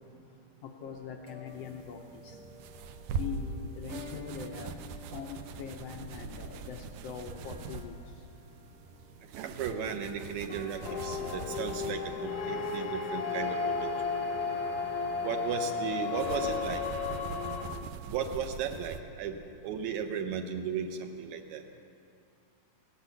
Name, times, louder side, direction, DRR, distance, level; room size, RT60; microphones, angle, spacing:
voice 1, 0.8-2.4 3.1-4.7 5.1-7.9, left 7 dB, 80° left, 4 dB, 1.4 m, -42 dB
sound 1, 0.8-15.9, left 1 dB, 55° right, 0.5 m, -53 dB
sound 2, 1.5-19.0, right 4 dB, 90° right, 2.3 m, -43 dB
voice 2, 9.4-14.1 15.2-16.8 18.1-19.4 19.6-21.6, right 7 dB, 75° right, 5 dB, 2.0 m, -35 dB
sound 3, 10.8-17.7, left 4 dB, 65° left, 0.9 m, -33 dB
17.5 x 10.0 x 6.9 m, 2.4 s
omnidirectional pair, 3.6 m